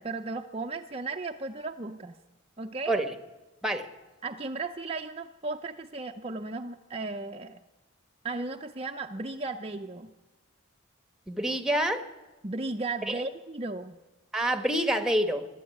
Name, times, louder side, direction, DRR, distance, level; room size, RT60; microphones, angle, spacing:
voice 1, 0.0-2.2 2.6-3.0 4.2-7.6 8.2-10.1 12.4-14.0, right 3 dB, 30° right, 4 dB, 0.6 m, -35 dB
voice 2, 11.3-12.0 13.1-13.2 14.3-15.5, right 1 dB, 5° right, 9 dB, 1.2 m, -27 dB
23.5 x 12.5 x 9.4 m, 1.2 s
head